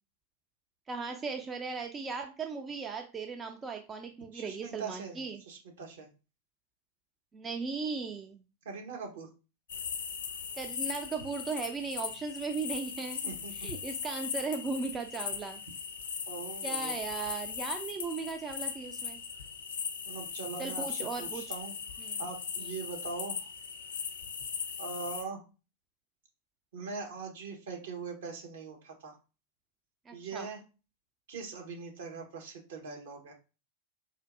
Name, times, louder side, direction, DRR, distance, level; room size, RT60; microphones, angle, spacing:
voice 1, 0.9-5.4 7.3-8.4 10.6-13.2 13.5-15.6 16.6-19.2 20.6-21.4 22.0-22.2 30.1-30.5, right 4 dB, 20° right, 5 dB, 0.4 m, -37 dB
voice 2, 4.3-6.1 8.6-9.3 13.2-13.5 16.3-16.9 20.0-21.7 22.2-23.5 24.8-25.4 26.7-29.2 30.1-30.6 31.3-33.3, right 4 dB, 60° right, 2 dB, 1.0 m, -41 dB
sound 1, 9.7-25.2, left 6 dB, 60° left, 0.5 m, -39 dB
4.3 x 2.5 x 2.5 m, 0.31 s
figure-of-eight pair, 90°, 0 cm